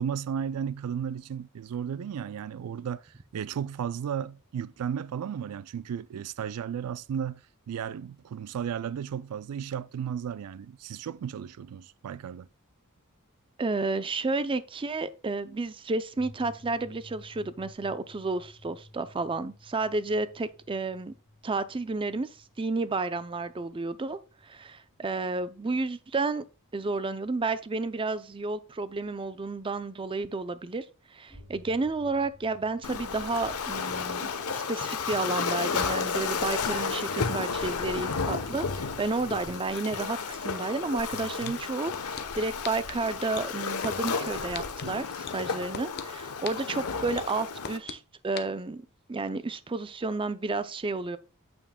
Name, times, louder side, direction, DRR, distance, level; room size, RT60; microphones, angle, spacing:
voice 1, 0.0-12.5 41.2-41.6, right 8 dB, 85° right, 0.4 m, -34 dB
voice 2, 13.6-21.1 21.4-22.3 22.6-26.4 26.7-30.9 31.1-48.8 49.1-51.2, right 3 dB, 25° right, 0.4 m, -31 dB
sound 1, 16.1-25.4 26.4-26.5 31.3-35.2, left 1 dB, 5° left, 3.5 m, -54 dB
Waves surf, 32.8-47.8, left 5 dB, 80° left, 1.0 m, -32 dB
sound 2, 41.0-41.1 41.4-42.2 42.6-42.9 43.3-44.1 44.5-44.8 45.3-46.0 46.4-46.7 47.2-47.9 48.4-48.5, left 7 dB, 50° left, 0.8 m, -36 dB
8.9 x 7.0 x 2.2 m
head